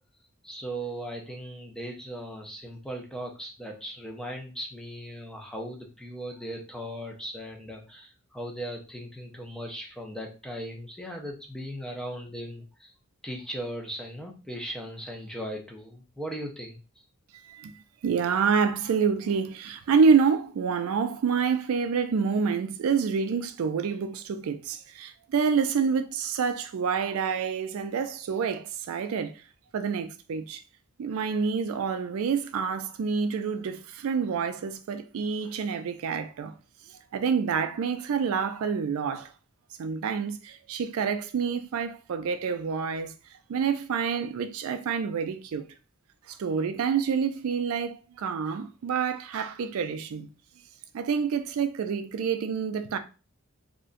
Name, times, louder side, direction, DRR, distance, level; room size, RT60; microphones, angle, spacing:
voice 1, 0.4-12.9 13.2-16.8, equal, 5° left, 0.5 m, -38 dB
voice 2, 18.0-29.4 29.7-30.6 31.0-36.6 36.9-39.3 39.8-43.1 43.5-45.7 46.3-50.3 50.9-53.0, right 6 dB, 70° right, 0.3 m, -27 dB
2.5 x 2.1 x 3.7 m
head